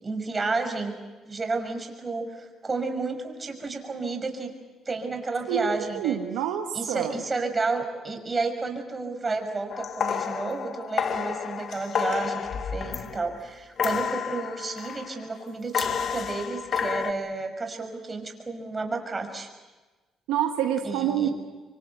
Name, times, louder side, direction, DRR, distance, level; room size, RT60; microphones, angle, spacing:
voice 1, 0.0-0.9 1.2-4.5 4.9-6.2 6.7-19.5 20.8-21.3, right 3 dB, 30° right, 5 dB, 6.0 m, -31 dB
voice 2, 5.5-7.1 20.3-21.3, right 10 dB, 90° right, 5 dB, 1.4 m, -27 dB
sound 1, 9.7-13.4 13.8-15.2 15.7-17.1, left 7 dB, 60° left, 1.7 m, -30 dB
26.5 x 24.0 x 8.1 m, 1.2 s
supercardioid pair, 70°, 0 cm